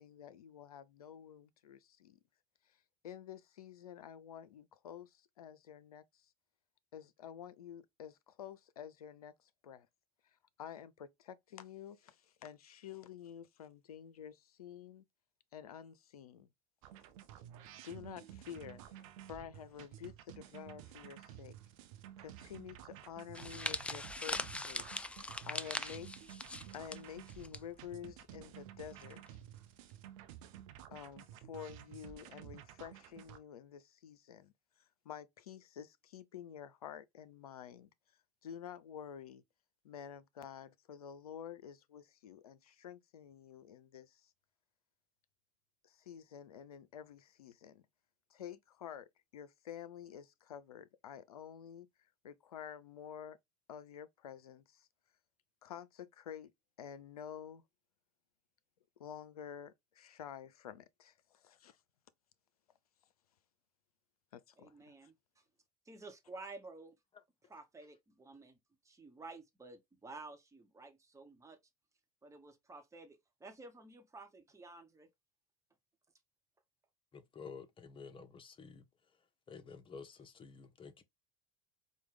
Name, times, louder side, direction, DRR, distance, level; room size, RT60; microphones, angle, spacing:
voice 1, 0.0-2.2 2.7-2.8 3.0-6.3 6.9-9.9 10.6-15.0 15.5-16.5 17.8-21.6 22.2-24.8 25.4-26.1 26.7-29.4 30.9-34.5 35.0-37.9 38.4-39.4 39.8-44.3 45.8-47.8 48.3-51.9 52.2-53.4 53.7-54.9 55.6-56.5 56.8-57.6 59.0-61.8 64.3-65.1, left 9 dB, 85° left, 0.5 m, -50 dB
sound 1, 16.8-33.4, right 11 dB, 65° right, 0.7 m, -53 dB
sound 2, 23.3-27.6 27.9-28.1 29.0-29.3, left 2 dB, 5° left, 0.3 m, -41 dB
voice 2, 64.6-65.4 65.8-67.0 67.5-68.6 68.8-71.6 72.2-75.1, right 3 dB, 15° right, 1.1 m, -52 dB
voice 3, 77.1-78.9 79.5-81.0, left 5 dB, 25° left, 0.8 m, -51 dB
4.5 x 2.2 x 3.2 m
hypercardioid pair, 75°, 19 cm